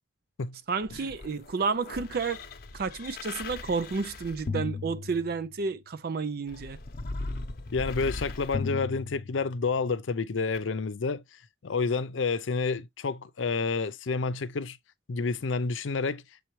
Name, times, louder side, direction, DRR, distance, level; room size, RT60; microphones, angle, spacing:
voice 1, 0.7-2.4 2.7-6.8, right 4 dB, 55° right, 0.4 m, -31 dB
sound 1, 0.8-5.7 6.5-9.8 10.5-10.6, left 3 dB, 50° left, 0.8 m, -38 dB
voice 2, 7.7-11.2 11.6-14.8 15.1-16.2, left 4 dB, 90° left, 0.6 m, -29 dB
6.9 x 4.5 x 3.1 m
head